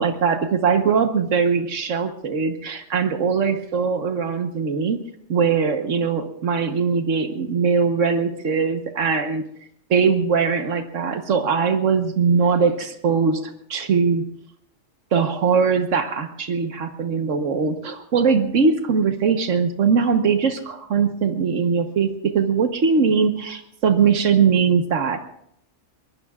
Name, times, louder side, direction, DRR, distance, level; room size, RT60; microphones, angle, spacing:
voice 1, 0.0-5.0 5.3-9.4 9.9-14.2 15.1-25.2, right 5 dB, 85° right, 7 dB, 1.5 m, -21 dB
23.5 x 21.0 x 2.4 m, 0.74 s
omnidirectional pair, 1.3 m